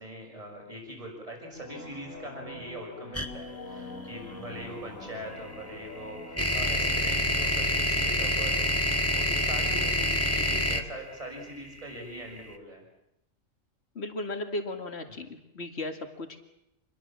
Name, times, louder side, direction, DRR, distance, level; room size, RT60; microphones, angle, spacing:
voice 1, 0.0-12.8 15.1-15.3, equal, 25° right, 1 dB, 6.5 m, -42 dB
sound 1, 1.5-8.9, left 2 dB, 75° left, 3.0 m, -44 dB
sound 2, 3.1-3.3 5.4-12.4, left 1 dB, 10° left, 1.6 m, -27 dB
voice 2, 13.9-16.4, left 2 dB, 50° left, 6 dB, 2.5 m, -36 dB
27.0 x 22.0 x 7.5 m, 0.82 s
omnidirectional pair, 1.4 m